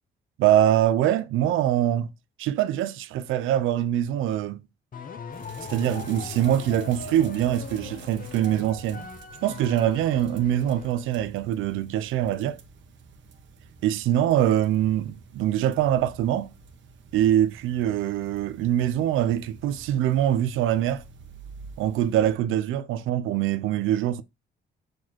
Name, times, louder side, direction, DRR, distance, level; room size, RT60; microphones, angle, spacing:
voice 1, 0.4-2.1 2.4-4.6 5.7-9.1 9.4-12.6 13.8-16.5 17.1-21.0 21.8-24.2, right 11 dB, 90° right, 0.6 m, -24 dB
sound 1, 4.9-11.4, left 5 dB, 45° left, 1.2 m, -40 dB
sound 2, 5.3-22.3, right 4 dB, 70° right, 1.4 m, -49 dB
6.3 x 4.9 x 4.5 m
cardioid pair, 90°, 20 cm